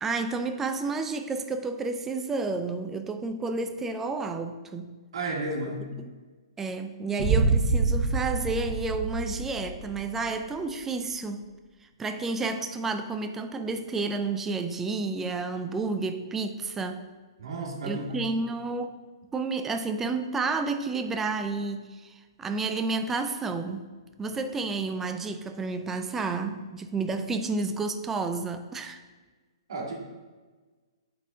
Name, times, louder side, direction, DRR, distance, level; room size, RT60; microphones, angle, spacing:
voice 1, 0.0-4.9 6.0-6.1 6.6-11.4 12.0-17.0 17.8-19.0 19.3-23.8 24.2-29.0, right 3 dB, 10° right, 7 dB, 0.4 m, -31 dB
voice 2, 5.1-5.9 17.4-18.1 29.7-30.1, right 2 dB, 65° right, -2 dB, 1.9 m, -32 dB
sound 1, 7.2-10.2, right 3 dB, 35° right, 1.2 m, -26 dB
8.5 x 4.3 x 3.8 m, 1.3 s
hypercardioid pair, 140°, 3 cm